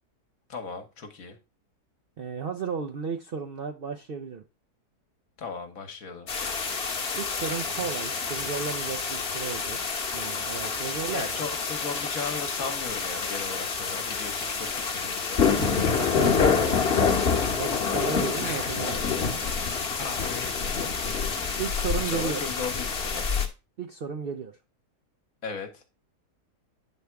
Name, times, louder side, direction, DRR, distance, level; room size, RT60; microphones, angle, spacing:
voice 1, 0.5-1.4 5.4-6.3 10.9-15.4 18.4-18.7 19.1-19.6 20.0-20.9 21.4-21.6 22.0-23.2 25.4-25.8, left 5 dB, 65° left, 6 dB, 1.4 m, -37 dB
voice 2, 2.2-4.4 7.1-9.8 10.1-11.5 15.5-16.8 17.5-19.1 21.6-22.4 23.8-24.5, right 6 dB, 60° right, 4 dB, 0.6 m, -34 dB
sound 1, 6.3-23.5, left 5 dB, 45° left, 1.2 m, -27 dB
9.0 x 3.5 x 4.5 m, 0.28 s
omnidirectional pair, 1.7 m